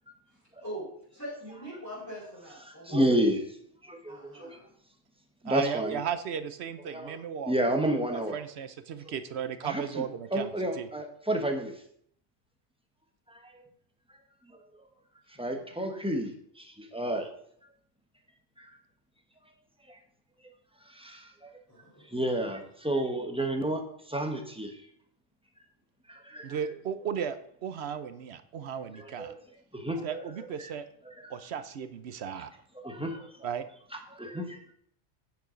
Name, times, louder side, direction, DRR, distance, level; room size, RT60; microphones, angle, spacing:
voice 1, 1.1-3.0 4.1-4.7 15.5-15.7 21.7-22.1, right 1 dB, 15° left, -10 dB, 4.4 m, -42 dB
voice 2, 2.7-3.4 3.8-4.6 5.4-6.0 6.9-7.2 7.5-8.4 9.6-10.0 10.3-11.7 15.4-17.3 18.6-18.7 19.9-20.0 20.9-21.5 22.1-24.7 26.1-26.6 29.0-29.4 29.7-30.2 31.1-31.3 32.7-33.5 34.1-34.6, right 1 dB, 5° right, 3 dB, 1.2 m, -31 dB
voice 3, 5.4-7.5 8.1-10.9 26.4-29.3 30.0-30.9 31.3-32.5 33.4-33.6, right 8 dB, 70° right, 12 dB, 0.9 m, -35 dB
9.5 x 7.1 x 5.1 m, 0.67 s
omnidirectional pair, 1.2 m